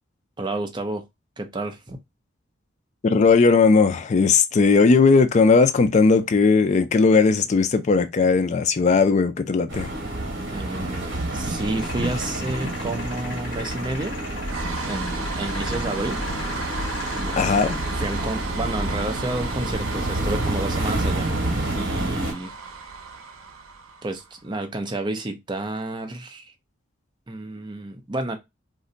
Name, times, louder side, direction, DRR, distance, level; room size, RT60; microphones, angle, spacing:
voice 1, 0.4-1.0 1.4-2.0 10.5-14.2 14.8-16.2 17.1-17.6 18.0-22.5 24.0-26.5 27.3-28.4, right 2 dB, 25° right, 0.5 m, -30 dB
voice 2, 3.0-9.9 17.4-17.8, left 4 dB, 35° left, 0.3 m, -18 dB
sound 1, 9.7-22.3, right 1 dB, 60° right, 1.0 m, -29 dB
sound 2, 11.5-18.5, left 3 dB, 60° left, 1.2 m, -38 dB
sound 3, 14.0-24.5, right 3 dB, 85° right, 0.6 m, -33 dB
2.5 x 2.1 x 3.8 m
head